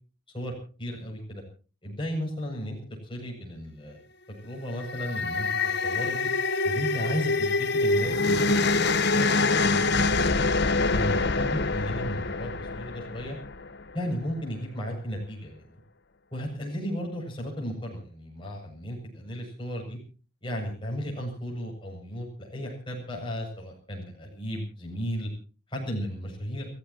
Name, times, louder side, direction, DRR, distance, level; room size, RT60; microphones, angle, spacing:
voice 1, 0.3-1.4 1.8-2.8 3.0-4.0 4.3-6.3 6.6-8.8 9.1-10.4 10.9-13.4 13.9-15.8 16.3-20.0 20.4-25.3 25.7-26.7, equal, 25° left, -1 dB, 7.6 m, -34 dB
sound 1, 4.7-14.0, left 3 dB, 55° left, 1.2 m, -25 dB
30.0 x 16.0 x 3.0 m, 0.37 s
head